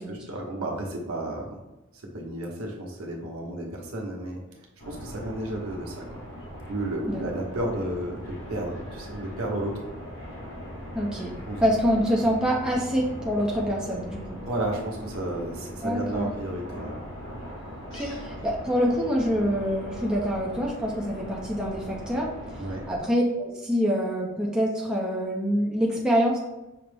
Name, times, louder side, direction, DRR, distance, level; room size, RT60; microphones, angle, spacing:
voice 1, 0.1-1.6 2.0-4.4 4.8-6.2 6.7-9.9 11.5-11.6 14.5-16.9 22.5-22.9, right 1 dB, 90° right, -1 dB, 0.9 m, -32 dB
sound 1, 4.8-23.0, equal, 60° left, 1.3 m, -39 dB
voice 2, 10.9-11.3 11.6-14.4 15.8-16.3 17.9-22.6 22.9-26.4, equal, 5° right, -3 dB, 0.5 m, -26 dB
5.9 x 2.0 x 3.3 m, 1.0 s
head